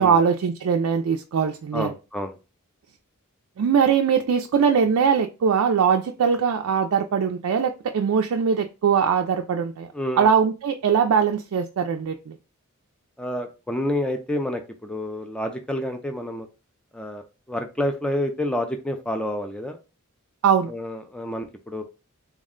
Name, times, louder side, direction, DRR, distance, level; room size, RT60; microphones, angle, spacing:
voice 1, 0.0-1.9 3.6-9.9 10.2-12.4 20.4-20.7, right 6 dB, 70° right, 4 dB, 0.3 m, -21 dB
voice 2, 1.7-2.4 9.9-10.3 13.2-16.5 16.9-19.8 20.7-21.8, left 1 dB, 5° left, 5 dB, 0.4 m, -29 dB
3.5 x 2.1 x 3.6 m, 0.30 s
head